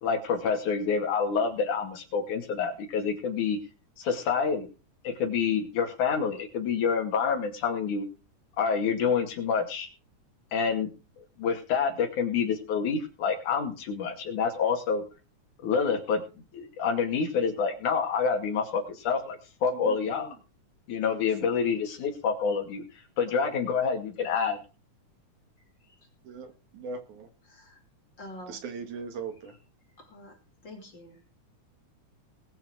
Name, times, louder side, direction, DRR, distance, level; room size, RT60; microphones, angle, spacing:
voice 1, 0.0-3.6 4.0-4.7 5.0-8.1 8.6-9.9 10.5-10.9 11.2-15.1 15.6-20.3 20.9-22.8 23.2-24.6, left 6 dB, 75° left, 3 dB, 3.8 m, -27 dB
voice 2, 19.7-20.4 21.3-21.5 26.2-27.3 28.5-29.6, right 5 dB, 70° right, 6 dB, 3.3 m, -40 dB
voice 3, 27.5-27.8 28.2-28.6 30.0-30.4 30.6-31.3, left 1 dB, 35° left, 3 dB, 3.0 m, -46 dB
20.5 x 7.0 x 4.7 m, 0.33 s
omnidirectional pair, 3.6 m